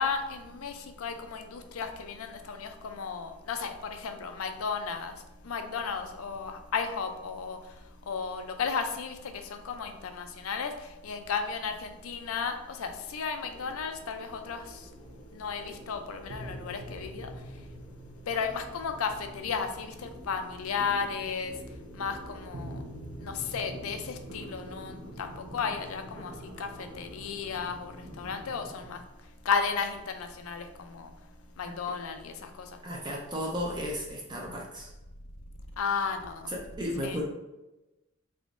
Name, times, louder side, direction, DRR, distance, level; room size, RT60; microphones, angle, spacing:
voice 1, 0.0-5.1 5.4-7.6 8.1-14.8 15.3-17.3 18.3-21.5 21.9-22.8 23.2-29.0 29.5-31.1 31.6-32.7 35.8-36.5 37.0-37.2, left 5 dB, 85° left, 7 dB, 0.4 m, -34 dB
sound 1, 12.2-29.0, equal, 70° right, 0.8 m, -46 dB
voice 2, 32.8-34.9 36.5-37.2, equal, 20° right, -1 dB, 0.5 m, -34 dB
3.5 x 3.4 x 2.5 m, 1.0 s
head